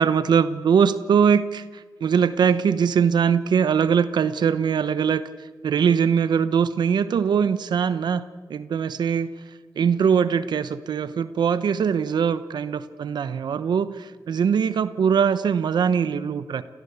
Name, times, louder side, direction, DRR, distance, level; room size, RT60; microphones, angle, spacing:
voice 1, 0.0-9.3 9.8-16.6, right 7 dB, 80° right, 14 dB, 1.0 m, -22 dB
28.5 x 17.5 x 8.2 m, 1.4 s
cardioid pair, 70°, 7 cm